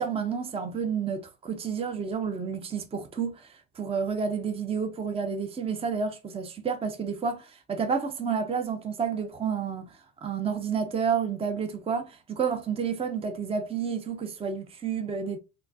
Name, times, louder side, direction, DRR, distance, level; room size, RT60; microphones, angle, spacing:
voice 1, 0.0-15.4, right 6 dB, 15° right, 0.5 m, -30 dB
3.8 x 2.2 x 2.6 m
supercardioid pair, 90°, 42 cm